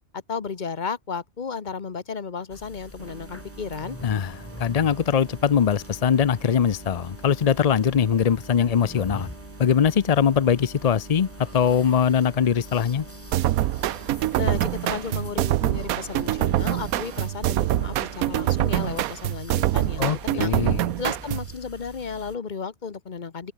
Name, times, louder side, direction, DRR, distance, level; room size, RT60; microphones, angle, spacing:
voice 1, 0.1-4.0 14.4-20.5 21.0-23.5, left 5 dB, 35° left, 1.1 m, -33 dB
sound 1, 2.5-22.4, left 1 dB, 10° left, 2.7 m, -44 dB
sound 2, 3.0-19.0, right 5 dB, 50° right, 2.0 m, -46 dB
voice 2, 4.0-4.3 4.6-9.3 9.6-13.1 20.0-20.8, left 7 dB, 55° left, 0.4 m, -21 dB
sound 3, 13.3-21.5, right 14 dB, 85° right, 1.1 m, -25 dB
omnidirectional pair, 1.5 m